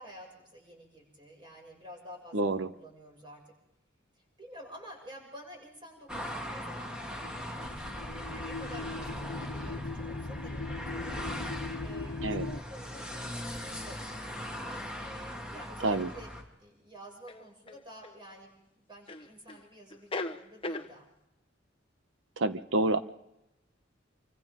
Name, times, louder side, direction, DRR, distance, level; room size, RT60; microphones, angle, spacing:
voice 1, 0.0-3.4 4.4-16.3 16.6-18.5 18.9-21.1, equal, 25° right, -1 dB, 6.6 m, -50 dB
voice 2, 2.3-2.7 12.2-12.5 15.8-16.1 22.4-23.0, right 2 dB, 90° right, 10 dB, 1.2 m, -28 dB
sound 1, 6.1-16.4, equal, 5° right, 2.3 m, -40 dB
sound 2, 7.2-12.6, left 3 dB, 70° left, 1.2 m, -39 dB
sound 3, 15.5-15.6 17.3-18.2 19.1-19.6 19.9-20.9, left 2 dB, 30° left, 1.1 m, -38 dB
27.5 x 25.0 x 3.7 m, 0.87 s
head